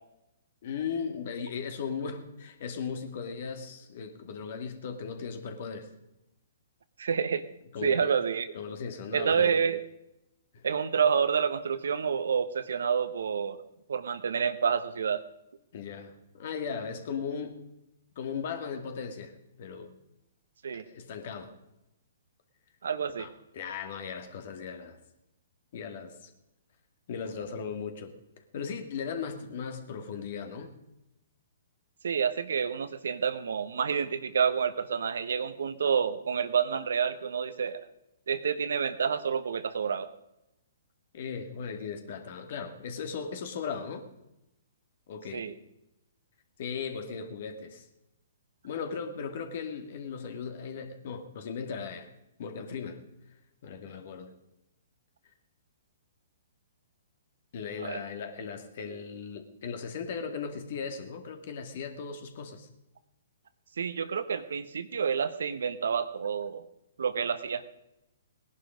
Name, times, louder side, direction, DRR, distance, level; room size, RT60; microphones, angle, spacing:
voice 1, 0.6-5.9 7.7-8.2 8.5-9.6 10.5-10.7 15.7-17.6 18.2-19.3 19.6-19.9 20.7-21.5 23.2-25.0 25.7-26.3 27.1-28.1 28.5-30.8 41.1-44.1 45.1-45.5 46.6-47.8 48.6-52.1 52.4-53.0 53.6-54.3 57.5-62.7, left 6 dB, 55° left, 7 dB, 2.2 m, -37 dB
voice 2, 7.0-7.4 7.8-8.5 9.1-9.8 10.6-13.6 13.9-15.2 20.6-20.8 22.8-23.3 32.0-37.8 38.3-40.1 45.3-45.5 57.8-58.0 63.8-66.6 67.0-67.7, right 6 dB, 70° right, 12 dB, 1.1 m, -28 dB
18.5 x 11.0 x 5.1 m, 0.90 s
figure-of-eight pair, 125°, 0 cm